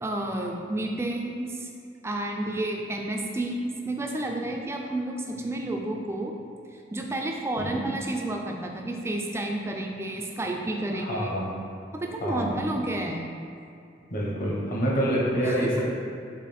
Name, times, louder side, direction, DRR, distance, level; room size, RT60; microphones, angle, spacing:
voice 1, 0.0-1.7 2.0-6.3 6.9-11.3 11.9-13.3 15.4-15.7, right 1 dB, 15° right, 1 dB, 0.3 m, -31 dB
voice 2, 7.6-7.9 10.9-11.6 12.2-12.6 14.1-15.8, equal, 45° left, -5 dB, 0.9 m, -27 dB
4.1 x 3.1 x 4.1 m, 2.5 s
head